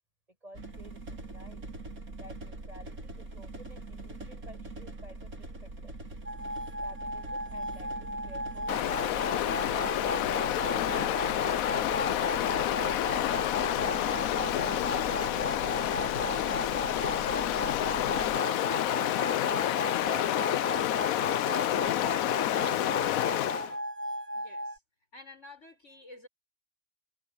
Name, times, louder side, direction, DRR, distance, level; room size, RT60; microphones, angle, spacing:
voice 1, 0.3-1.6 2.2-5.9 6.8-10.5 14.6-19.4 20.0-21.8, equal, 25° right, 7.6 m, -53 dB
sound 1, 0.5-18.4, right 2 dB, 80° right, 4.9 m, -43 dB
sound 2, 6.3-24.8, equal, 10° right, 1.3 m, -37 dB
Stream, 8.7-23.7, left 13 dB, 80° left, 1.1 m, -29 dB
voice 2, 24.3-24.8 25.1-26.3, left 2 dB, 55° left, 7.3 m, -50 dB
omnidirectional pair, 1.5 m